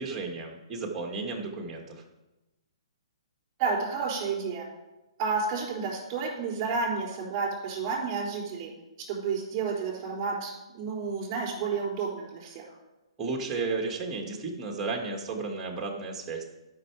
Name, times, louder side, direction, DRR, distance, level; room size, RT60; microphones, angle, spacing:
voice 1, 0.0-2.0 13.2-16.4, right 3 dB, 15° right, 1 dB, 1.7 m, -33 dB
voice 2, 3.6-4.7 5.2-8.7 9.1-12.6, right 5 dB, 35° right, -2 dB, 3.8 m, -31 dB
11.5 x 5.8 x 4.8 m, 1.0 s
hypercardioid pair, 135°, 3 cm